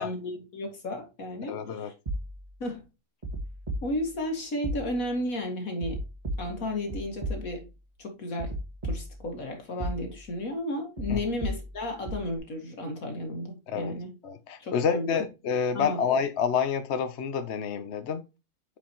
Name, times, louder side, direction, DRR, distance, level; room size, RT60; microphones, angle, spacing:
voice 1, 0.0-1.9 2.6-2.8 3.8-6.0 6.4-7.7 8.0-8.5 8.8-14.1 14.6-15.1 15.7-16.0, left 1 dB, 70° left, 2.4 m, -33 dB
voice 2, 1.5-1.9 11.1-11.2 13.7-13.9 14.2-18.3, left 6 dB, 55° left, 0.9 m, -28 dB
sound 1, 2.1-2.7 3.2-4.3 4.6-5.3 5.8-7.8 8.4-9.4 9.8-10.4 11.0-12.4, right 1 dB, 25° right, 2.0 m, -36 dB
8.4 x 5.1 x 2.9 m
omnidirectional pair, 1.5 m